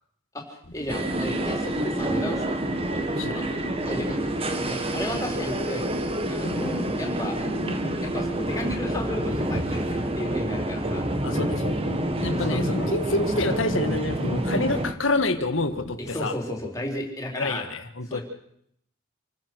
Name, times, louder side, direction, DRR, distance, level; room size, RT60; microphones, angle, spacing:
voice 1, 0.3-2.6 2.9-3.0 3.3-3.6 3.8-7.4 8.0-11.1 12.3-12.6 16.0-17.6 18.1-18.2, left 1 dB, 15° left, 0 dB, 4.4 m, -34 dB
sound 1, 0.6-16.2, left 1 dB, 55° left, 1.5 m, -40 dB
sound 2, 0.9-14.9, right 1 dB, 30° right, 1.6 m, -28 dB
voice 2, 11.2-11.9 12.2-16.4 17.4-18.2, left 2 dB, 75° left, 8 dB, 1.8 m, -28 dB
27.5 x 15.5 x 6.4 m, 0.71 s
head